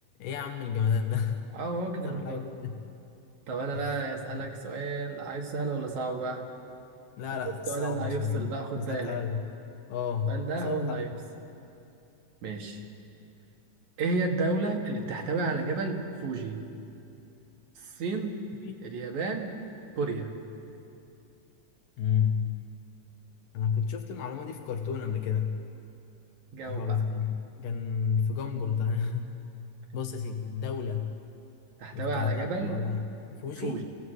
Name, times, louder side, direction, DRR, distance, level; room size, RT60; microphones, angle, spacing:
voice 1, 0.2-1.4 2.0-2.7 3.7-3.9 4.3-4.5 7.2-9.4 9.9-11.1 18.6-18.8 22.0-22.6 23.5-25.6 26.6-29.4 29.9-31.1 31.9-33.8, left 7 dB, 85° left, 4 dB, 2.8 m, -31 dB
voice 2, 1.5-2.4 3.5-6.4 7.7-9.2 10.3-11.1 12.4-12.8 14.0-16.6 17.8-18.4 18.8-19.5 20.0-20.3 26.5-27.0 31.8-32.8 33.6-33.8, right 3 dB, 65° right, 2 dB, 3.1 m, -32 dB
27.5 x 17.0 x 8.0 m, 2.7 s
omnidirectional pair, 3.8 m